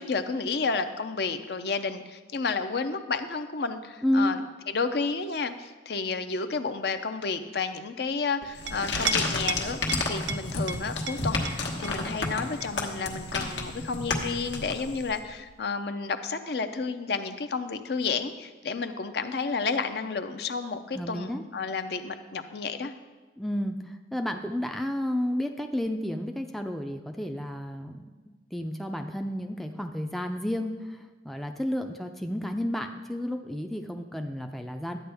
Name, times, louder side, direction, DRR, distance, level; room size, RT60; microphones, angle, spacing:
voice 1, 0.0-4.4 4.7-22.9, left 4 dB, 60° left, 9 dB, 0.6 m, -31 dB
voice 2, 4.0-4.4 20.9-21.4 23.4-35.0, left 1 dB, ahead, 4 dB, 0.4 m, -31 dB
Chink clink, 8.4-15.5, right 6 dB, 90° right, 0.5 m, -38 dB
sound 1, 8.6-15.1, left 3 dB, 85° left, 1.2 m, -31 dB
11.5 x 8.7 x 3.4 m, 1.3 s
head